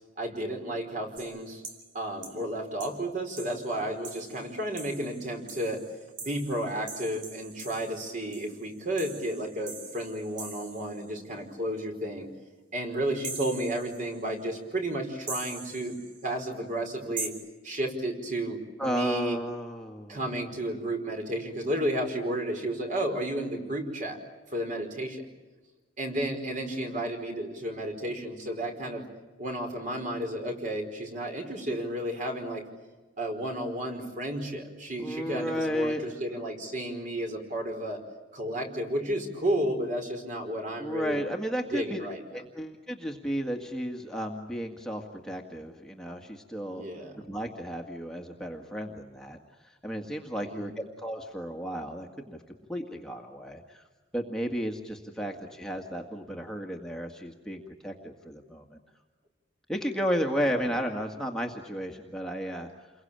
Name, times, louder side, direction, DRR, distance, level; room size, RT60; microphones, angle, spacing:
voice 1, 0.2-1.6 1.9-5.8 6.2-12.3 12.7-16.0 16.2-17.3 17.6-19.4 20.1-24.2 24.5-25.3 26.0-29.1 29.4-32.7 33.2-38.0 38.3-41.2 41.7-42.4 46.7-47.2 50.4-50.9 60.4-60.5, right 1 dB, 40° right, 4 dB, 4.9 m, -32 dB
sound 1, 1.2-1.9 2.2-2.4 2.8-3.0 3.4-11.1 13.2-14.3 15.3-16.3 17.2-17.3, right 4 dB, 70° right, 4.4 m, -42 dB
voice 2, 18.8-20.2 35.0-36.0 40.8-42.1 42.3-49.4 49.6-53.8 54.1-58.8 59.7-62.9, equal, 5° left, 1 dB, 1.9 m, -33 dB
29.5 x 22.5 x 8.9 m, 1.2 s
head